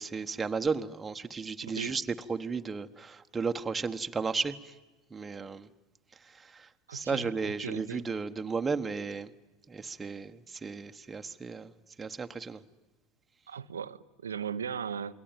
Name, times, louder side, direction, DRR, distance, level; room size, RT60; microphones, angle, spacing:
voice 1, 0.0-4.6 5.1-5.7 6.5-9.3 9.7-11.7 12.0-12.6, right 5 dB, 20° right, 1.3 m, -34 dB
voice 2, 1.6-2.0 6.9-8.1 13.5-15.1, right 7 dB, 85° right, 0.8 m, -38 dB
28.5 x 22.0 x 9.2 m
hypercardioid pair, 80°, 0 cm